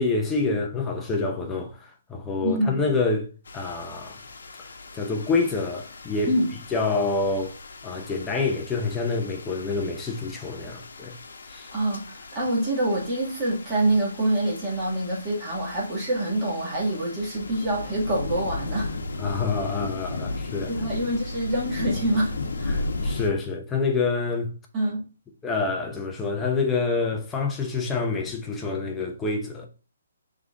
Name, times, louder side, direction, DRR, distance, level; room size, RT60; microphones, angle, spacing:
voice 1, 0.0-1.7 2.1-3.3 3.5-4.2 4.9-6.3 6.7-7.5 7.8-11.1 11.5-11.7 19.2-20.7 22.7-24.5 25.4-29.7, left 4 dB, 10° left, 0.7 m, -27 dB
voice 2, 2.4-2.8 6.3-6.5 11.7-18.9 20.7-22.8 24.7-25.0, right 1 dB, 15° right, 2.0 m, -26 dB
sound 1, 3.5-23.3, left 2 dB, 75° left, 0.9 m, -36 dB
5.4 x 3.7 x 2.5 m
hypercardioid pair, 170°, 0 cm